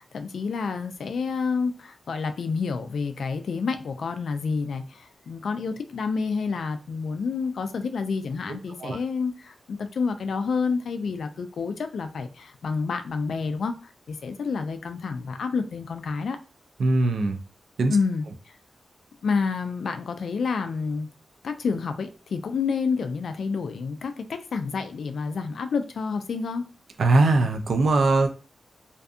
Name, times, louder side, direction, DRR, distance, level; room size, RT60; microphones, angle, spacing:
voice 1, 0.0-16.4 17.9-18.2 19.2-21.1 21.4-26.7, left 5 dB, 75° left, 8 dB, 0.3 m, -29 dB
voice 2, 16.8-17.4 17.8-17.9 27.0-28.3, right 2 dB, 70° right, 6 dB, 0.4 m, -20 dB
2.6 x 2.3 x 2.4 m, 0.34 s
wide cardioid pair, 150°, 0 cm